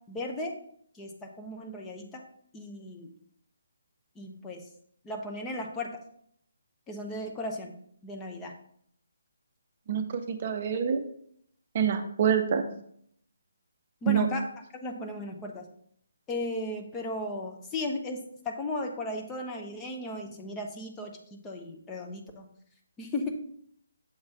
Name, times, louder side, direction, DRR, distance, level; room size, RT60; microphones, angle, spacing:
voice 1, 0.1-0.5 1.0-2.2 2.5-3.1 4.2-4.6 5.0-6.0 6.9-7.7 8.0-8.5 14.0-14.5 14.8-15.7 16.3-22.5 23.0-23.3, left 2 dB, 15° left, 1 dB, 0.7 m, -36 dB
voice 2, 9.9-11.0 11.7-12.7 14.0-14.3, right 7 dB, 40° right, 7 dB, 0.6 m, -26 dB
7.1 x 3.2 x 5.4 m, 0.66 s
figure-of-eight pair, 145°, 0 cm